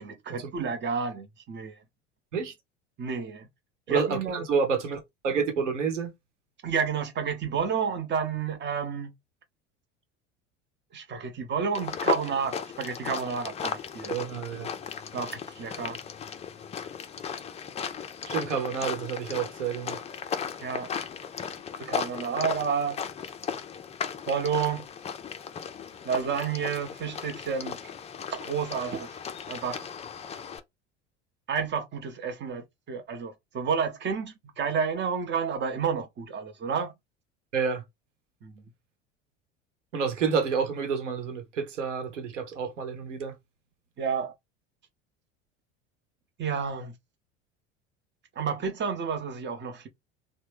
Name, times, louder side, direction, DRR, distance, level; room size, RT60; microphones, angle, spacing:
voice 1, 0.0-1.8 3.0-3.5 3.9-4.4 6.6-9.1 10.9-14.1 15.1-16.0 20.6-20.9 21.8-23.1 24.3-24.8 26.0-27.9 28.3-29.2 29.5-29.9 31.5-36.9 38.4-38.5 44.0-44.3 46.4-46.9 48.4-49.9, right 6 dB, 30° right, 0.8 m, -30 dB
voice 2, 3.9-6.1 13.6-13.7 14.1-14.7 18.3-20.0 37.5-37.8 39.9-43.3, right 6 dB, 80° right, 1.0 m, -29 dB
sound 1, 11.7-30.6, left 7 dB, 20° left, 0.4 m, -36 dB
3.1 x 2.1 x 3.3 m
hypercardioid pair, 75°, 36 cm